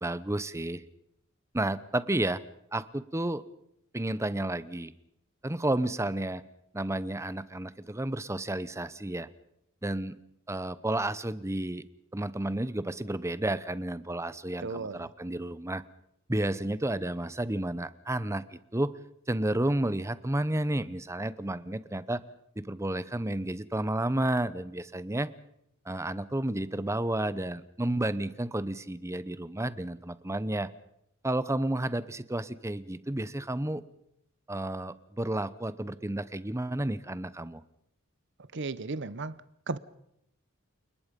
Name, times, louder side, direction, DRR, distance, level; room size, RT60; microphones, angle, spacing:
voice 1, 0.0-0.8 1.5-2.4 2.7-3.4 3.9-4.9 5.4-6.4 6.7-9.3 9.8-10.2 10.5-11.8 12.1-15.8 16.3-18.9 19.3-22.2 22.6-25.3 25.9-30.7 31.2-33.8 34.5-37.6, right 1 dB, 15° right, 0.8 m, -31 dB
voice 2, 14.6-15.0 38.5-39.3 39.7-39.8, right 3 dB, 55° right, 0.9 m, -34 dB
29.5 x 20.0 x 5.3 m
head